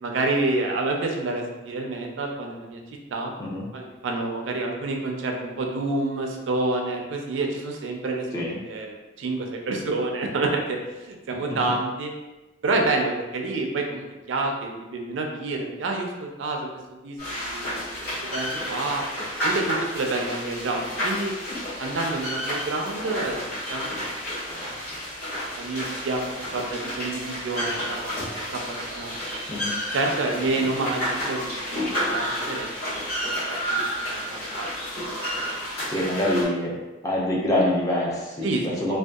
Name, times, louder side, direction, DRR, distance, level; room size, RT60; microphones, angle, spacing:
voice 1, 0.0-2.8 3.1-3.3 3.7-12.1 12.6-16.6 17.0-17.2 17.4-17.8 18.2-19.0 19.4-21.3 21.8-23.4 23.7-23.9 24.4-24.7 25.6-26.2 26.5-29.4 29.9-33.8 34.1-34.7 38.4-38.7, right 2 dB, 85° right, 2 dB, 0.4 m, -28 dB
sound 1, 17.2-36.4, equal, 50° left, 1.2 m, -31 dB
voice 2, 35.8-36.7 37.0-39.0, left 1 dB, 20° left, -4 dB, 0.4 m, -25 dB
2.6 x 2.2 x 2.3 m, 1.1 s
head